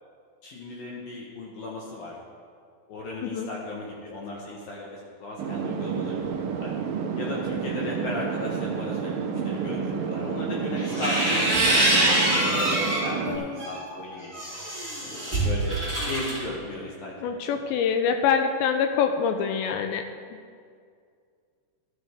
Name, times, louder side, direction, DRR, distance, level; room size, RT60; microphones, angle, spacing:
voice 1, 0.4-2.1 2.9-6.7 7.2-14.4 15.0-15.8 16.1-17.1 17.5-17.6, left 2 dB, 65° left, -4 dB, 2.6 m, -36 dB
sound 1, 5.4-13.4, right 6 dB, 70° right, 2.1 m, -30 dB
sound 2, 10.8-13.1 13.6-16.4, right 1 dB, 5° left, 1.8 m, -24 dB
voice 2, 13.3-13.7 17.2-20.1, left 7 dB, 80° left, 6 dB, 2.7 m, -25 dB
13.0 x 12.5 x 3.6 m, 2.2 s
omnidirectional pair, 5.4 m